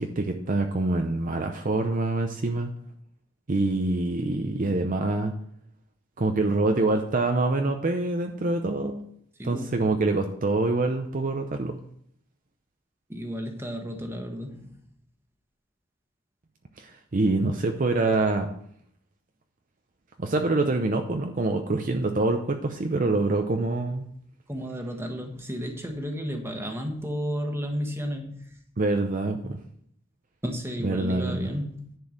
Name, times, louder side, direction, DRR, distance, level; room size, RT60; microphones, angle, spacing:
voice 1, 0.0-2.7 3.5-5.3 6.2-9.0 9.4-11.8 16.8-18.5 20.2-24.1 28.8-29.6 30.8-31.5, right 2 dB, 45° right, 4 dB, 0.7 m, -25 dB
voice 2, 9.4-9.8 13.1-14.7 24.5-28.5 30.4-32.0, equal, 15° right, 3 dB, 1.3 m, -33 dB
10.5 x 4.6 x 6.5 m, 0.67 s
head